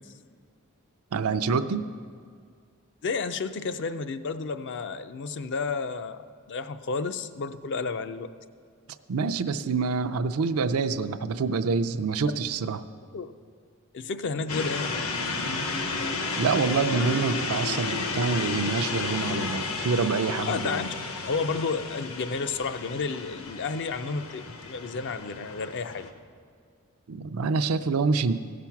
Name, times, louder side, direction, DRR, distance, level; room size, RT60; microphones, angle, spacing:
voice 1, 1.1-1.9 9.1-12.8 16.4-20.9 27.1-28.4, right 4 dB, 80° right, 10 dB, 0.5 m, -26 dB
voice 2, 3.0-8.3 13.1-13.3 13.9-15.1 20.4-21.0 21.3-26.1, left 4 dB, 55° left, 10 dB, 0.5 m, -31 dB
sound 1, 14.5-26.1, left 3 dB, 70° left, 1.0 m, -32 dB
15.5 x 5.9 x 5.8 m, 2.1 s
head